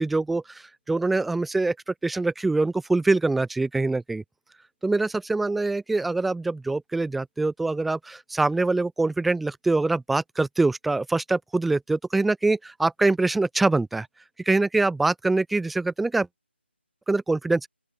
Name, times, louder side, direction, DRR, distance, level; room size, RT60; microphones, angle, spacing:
voice 1, 0.0-4.2 4.8-14.1 14.4-16.3 17.1-17.7, right 3 dB, ahead, 1.7 m, -24 dB
open air
figure-of-eight pair, 175°, 6 cm